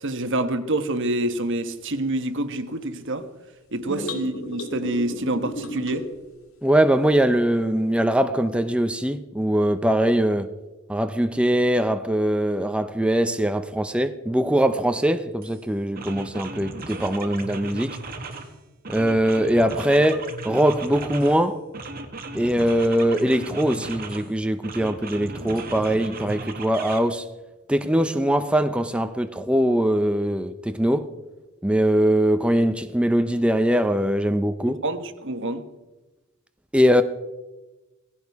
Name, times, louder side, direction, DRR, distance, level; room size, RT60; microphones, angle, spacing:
voice 1, 0.0-3.3 3.7-6.1 34.7-35.7, right 1 dB, 60° right, 1.2 m, -27 dB
sound 1, 3.8-6.2, left 1 dB, 80° left, 2.2 m, -33 dB
voice 2, 6.6-10.5 10.9-18.0 18.9-21.6 22.3-27.2 27.7-31.1 31.6-34.8 36.7-37.0, right 1 dB, 5° right, 0.6 m, -22 dB
sound 2, 15.4-15.6 16.0-18.5 18.8-21.4 21.7-24.3 24.6-27.0, right 3 dB, 45° right, 1.8 m, -36 dB
17.5 x 16.0 x 4.7 m
head